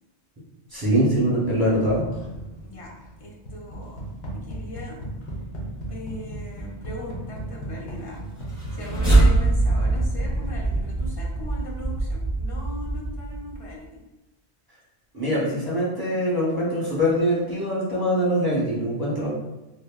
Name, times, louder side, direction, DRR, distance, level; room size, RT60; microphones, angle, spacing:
voice 1, 0.7-2.1 15.1-19.3, equal, 25° right, -8 dB, 0.7 m, -23 dB
sound 1, 0.8-11.7, right 1 dB, 90° left, 1.0 m, -37 dB
voice 2, 2.6-2.9 3.2-4.0 4.3-5.1 5.9-8.2 8.4-13.9, left 1 dB, 45° left, -2 dB, 0.5 m, -39 dB
sound 2, 8.4-13.7, right 2 dB, 25° left, 1.4 m, -23 dB
3.3 x 2.1 x 2.2 m, 1.0 s
omnidirectional pair, 1.1 m